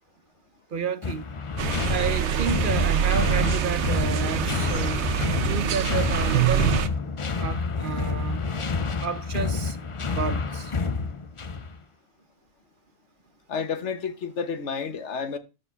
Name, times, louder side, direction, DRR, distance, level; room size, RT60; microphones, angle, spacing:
voice 1, 0.7-1.3 1.9-5.0 5.4-6.7 7.4-8.5 9.0-9.8 10.1-10.7, right 6 dB, 55° right, 0.8 m, -31 dB
sound 1, 1.0-11.8, left 4 dB, 35° left, 0.6 m, -28 dB
sound 2, 1.6-6.9, right 9 dB, 80° right, 1.1 m, -25 dB
voice 2, 13.5-15.4, left 6 dB, 90° left, 1.4 m, -30 dB
13.0 x 4.8 x 5.6 m
omnidirectional pair, 1.2 m